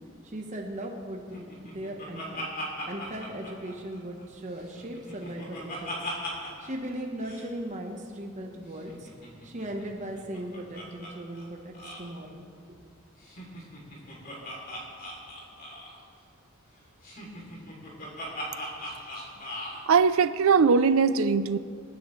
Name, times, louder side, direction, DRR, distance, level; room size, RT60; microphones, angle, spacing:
voice 1, 0.2-2.4 2.9-5.9 6.6-9.1 9.4-12.5, right 1 dB, 35° right, 1 dB, 1.0 m, -38 dB
Laughter, 1.3-4.2 4.6-6.7 6.9-7.0 7.2-7.5 8.7-11.1 11.4-11.5 11.7-12.1 13.2-16.0 17.0-19.8, equal, 45° left, 2.9 m, -39 dB
voice 2, 19.9-21.6, right 5 dB, 70° right, 14 dB, 0.4 m, -21 dB
26.5 x 9.7 x 3.2 m, 2.2 s
head